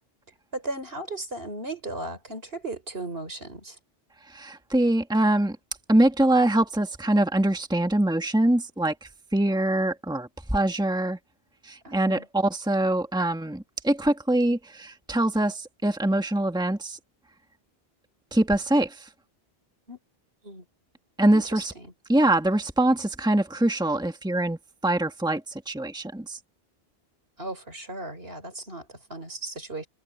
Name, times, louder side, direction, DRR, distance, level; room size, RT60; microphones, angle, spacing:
voice 1, 0.5-3.8 11.8-12.2 19.9-20.0 20.4-20.6 21.3-21.9 27.4-29.9, right 2 dB, 70° right, 4.7 m, -36 dB
voice 2, 4.3-5.6 5.9-11.2 11.6-17.0 18.3-19.1 21.2-21.7 22.1-26.4, right 1 dB, 5° right, 1.7 m, -24 dB
omnidirectional pair, 1.0 m